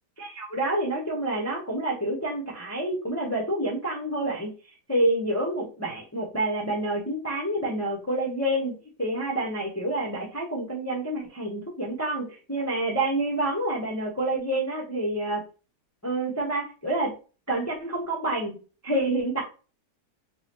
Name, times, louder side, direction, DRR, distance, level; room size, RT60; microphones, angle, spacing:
voice 1, 0.2-4.5 4.9-8.7 9.0-15.4 16.0-17.1 17.5-18.6 18.8-19.4, right 1 dB, 15° left, -4 dB, 0.5 m, -28 dB
4.8 x 2.3 x 2.9 m, 0.35 s
omnidirectional pair, 1.8 m